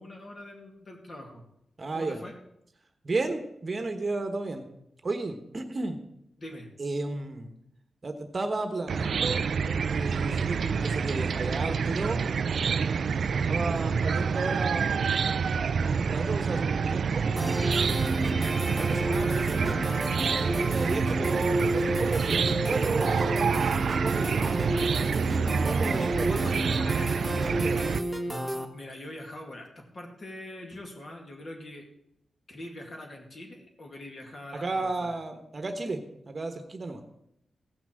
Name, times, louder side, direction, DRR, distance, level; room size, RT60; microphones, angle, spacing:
voice 1, 0.0-1.4 1.9-2.4 6.4-6.7 13.3-13.4 13.8-13.9 25.9-27.3 28.2-31.9 32.5-35.2, left 1 dB, 40° left, 2 dB, 2.4 m, -43 dB
voice 2, 1.8-2.2 3.0-4.7 5.0-6.0 6.8-7.5 8.0-12.2 13.5-15.4 15.8-17.3 17.8-18.3 18.8-19.8 20.6-23.7 24.0-24.5 25.6-26.4 27.6-27.8 34.5-37.0, right 3 dB, 35° right, 6 dB, 1.2 m, -33 dB
Chicken rooster / Cricket, 8.9-28.0, right 6 dB, 65° right, 0.4 m, -27 dB
sound 1, 17.4-28.6, right 1 dB, ahead, 1.1 m, -31 dB
15.0 x 6.1 x 7.6 m, 0.79 s
wide cardioid pair, 140°, 0 cm